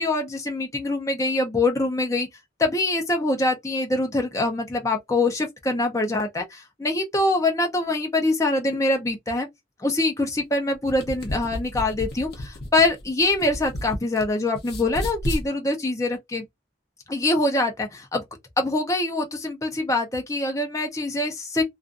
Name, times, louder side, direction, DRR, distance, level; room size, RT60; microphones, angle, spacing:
voice 1, 0.0-2.3 2.6-9.5 9.8-16.4 17.1-18.2 18.6-21.6, left 2 dB, 15° left, 0.6 m, -24 dB
sound 1, 10.7-14.2 14.5-15.5, left 1 dB, 60° left, 0.7 m, -32 dB
2.4 x 2.4 x 2.4 m
head